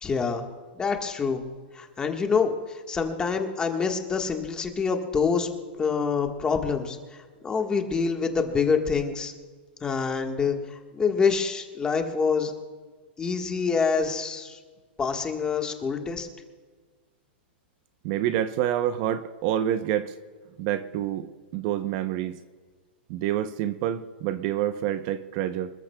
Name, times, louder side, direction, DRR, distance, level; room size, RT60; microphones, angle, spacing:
voice 1, 0.0-0.4 0.8-1.4 1.7-5.5 5.8-7.0 7.4-9.3 9.8-10.6 10.9-12.5 13.2-14.6 15.0-16.3, left 5 dB, 15° left, 4 dB, 1.4 m, -26 dB
voice 2, 18.0-20.1 20.6-21.3 21.5-22.4 23.1-25.7, right 11 dB, 40° right, 11 dB, 0.7 m, -27 dB
27.0 x 13.5 x 2.3 m, 1.5 s
hypercardioid pair, 150°, 6 cm